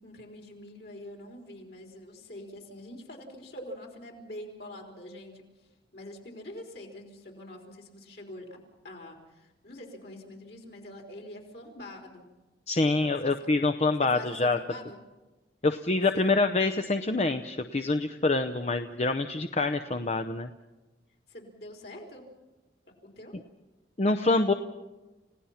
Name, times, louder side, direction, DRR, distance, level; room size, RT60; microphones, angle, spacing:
voice 1, 0.0-8.6 8.8-12.2 13.2-13.3 14.0-15.0 16.1-16.3 21.3-22.2 23.0-23.4, left 1 dB, 60° left, 1 dB, 3.9 m, -45 dB
voice 2, 12.7-14.6 15.6-20.5 24.0-24.5, left 3 dB, 35° left, 8 dB, 0.7 m, -26 dB
30.0 x 17.0 x 5.7 m, 1.1 s
head